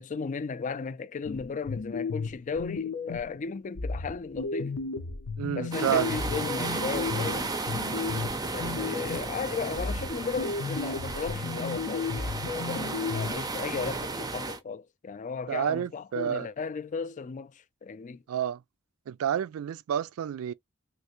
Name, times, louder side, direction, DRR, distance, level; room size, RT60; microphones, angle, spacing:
voice 1, 0.0-4.8 5.5-7.6 8.5-18.2, left 5 dB, 35° left, 0.4 m, -35 dB
sound 1, 1.2-3.4 3.8-9.4 9.8-13.3, left 4 dB, 80° left, 0.7 m, -34 dB
voice 2, 5.4-6.1 15.5-16.5 18.3-18.6 19.1-20.5, right 9 dB, 75° right, 0.3 m, -29 dB
sound 2, 5.7-14.6, right 3 dB, 20° right, 0.5 m, -34 dB
3.3 x 2.7 x 2.9 m
head